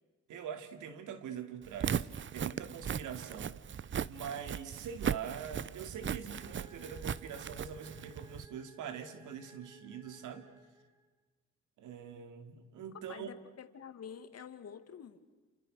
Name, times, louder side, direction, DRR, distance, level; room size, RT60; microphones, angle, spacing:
voice 1, 0.3-10.5 11.8-13.3, right 8 dB, 85° right, 9 dB, 2.8 m, -44 dB
Walk footsteps, 1.7-8.5, right 8 dB, 40° right, 0.8 m, -38 dB
sound 1, 6.3-11.2, equal, 10° right, 4.0 m, -60 dB
voice 2, 13.1-15.2, left 7 dB, 55° left, 10 dB, 2.4 m, -48 dB
29.5 x 28.5 x 6.6 m, 1.3 s
cardioid pair, 90°, 30 cm